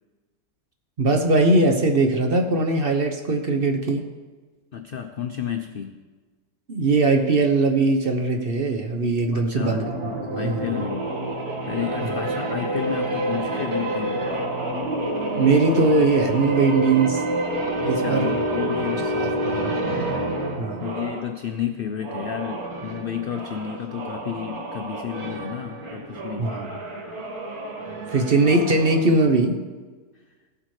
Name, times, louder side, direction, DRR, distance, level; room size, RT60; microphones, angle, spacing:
voice 1, 1.0-4.0 6.7-10.8 12.0-12.2 15.4-17.2 17.8-18.3 19.2-19.7 20.6-20.9 26.4-26.8 28.1-29.6, right 3 dB, 45° right, 4 dB, 0.9 m, -21 dB
voice 2, 4.7-6.0 9.3-9.9 10.3-11.1 11.7-14.3 17.8-20.2 20.8-26.5 30.1-30.2, left 9 dB, 75° left, 7 dB, 0.5 m, -32 dB
sound 1, 9.6-21.3 21.9-29.1, right 1 dB, 70° right, 2.0 m, -28 dB
17.0 x 8.4 x 3.2 m, 1.4 s
omnidirectional pair, 1.6 m